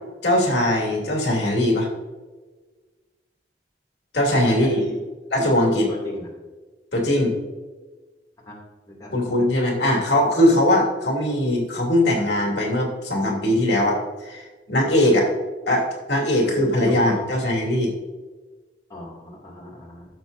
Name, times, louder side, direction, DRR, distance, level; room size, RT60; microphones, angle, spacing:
voice 1, 0.2-1.9 4.1-4.8 5.3-5.9 6.9-7.3 9.1-15.3 15.7-17.9, left 1 dB, 65° left, -2 dB, 2.9 m, -20 dB
voice 2, 4.3-5.0 5.9-6.3 8.5-8.6 8.9-9.1 15.0-15.1 16.4-17.2 18.9-20.1, left 1 dB, 20° left, -5 dB, 2.5 m, -36 dB
16.0 x 7.1 x 2.7 m, 1.3 s
head